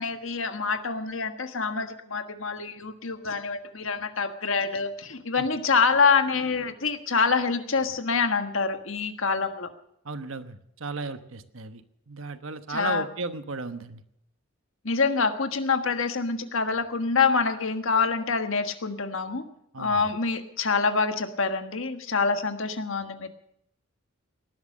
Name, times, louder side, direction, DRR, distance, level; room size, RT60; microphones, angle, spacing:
voice 1, 0.0-9.7 12.7-13.1 14.8-19.4 19.8-23.3, left 4 dB, 70° left, 8 dB, 1.5 m, -26 dB
voice 2, 10.0-14.0 19.7-20.0, right 3 dB, 70° right, 10 dB, 1.1 m, -35 dB
18.5 x 11.5 x 6.5 m, 0.76 s
head